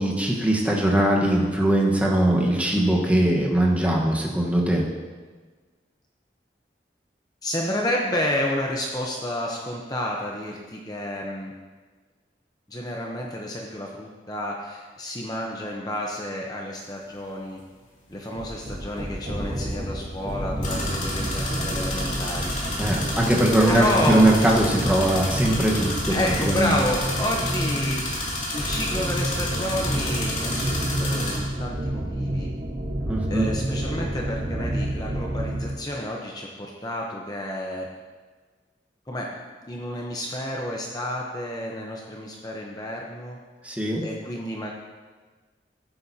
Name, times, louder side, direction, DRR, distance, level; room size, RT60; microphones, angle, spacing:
voice 1, 0.0-4.8 22.8-26.7 33.1-33.5 43.6-44.0, right 1 dB, 10° right, -2 dB, 1.2 m, -21 dB
voice 2, 7.4-11.5 12.7-17.6 18.1-22.5 23.6-24.5 26.1-28.2 28.5-32.5 33.3-37.9 39.1-39.3 39.7-43.4 44.0-44.7, left 1 dB, 20° left, -1 dB, 0.8 m, -30 dB
sound 1, 16.8-16.9 20.6-31.4, left 2 dB, 45° left, 2.7 m, -31 dB
sound 2, 18.3-35.8, right 1 dB, 45° right, 1.3 m, -29 dB
15.5 x 8.6 x 2.8 m, 1.4 s
head